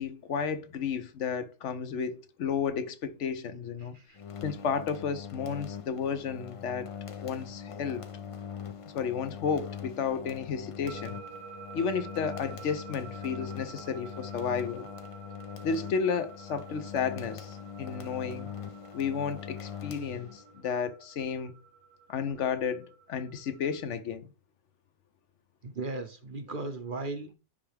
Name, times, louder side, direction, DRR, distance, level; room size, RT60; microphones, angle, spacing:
voice 1, 0.0-4.0 4.4-6.9 7.2-8.0 8.9-11.2 11.7-14.9 15.6-18.5 18.9-21.5 22.1-24.3, left 6 dB, 70° left, 1.0 m, -32 dB
sound 1, 4.1-20.6, left 8 dB, 55° left, 0.4 m, -42 dB
sound 2, 10.9-23.9, right 6 dB, 80° right, 1.1 m, -50 dB
voice 2, 25.6-27.3, right 3 dB, 50° right, 0.8 m, -37 dB
10.0 x 3.4 x 3.4 m
omnidirectional pair, 1.3 m